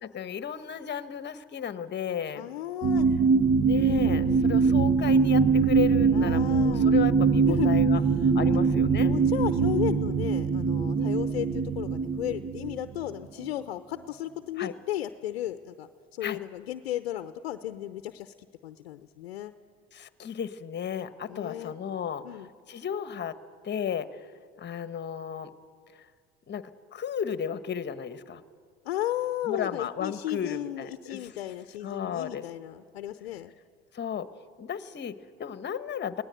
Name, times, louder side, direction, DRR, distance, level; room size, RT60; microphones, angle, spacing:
voice 1, 0.0-2.5 3.6-8.0 8.3-9.1 10.9-11.2 14.6-14.7 16.2-16.4 19.9-22.2 22.7-23.4 23.6-24.2 24.6-25.5 26.5-28.4 29.4-31.3 31.8-32.4 33.9-34.3 34.6-36.2, left 8 dB, 35° left, 12 dB, 1.4 m, -34 dB
voice 2, 2.3-3.1 3.4-3.5 4.2-4.7 6.1-7.0 7.5-7.8 9.0-18.3 18.6-19.5 21.3-21.8 22.2-22.5 28.8-33.5, left 13 dB, 85° left, 10 dB, 0.8 m, -34 dB
sound 1, 2.8-12.9 13.4-13.5, right 5 dB, 30° right, 1.0 m, -23 dB
23.5 x 18.0 x 9.1 m, 2.1 s
hypercardioid pair, 80°, 30 cm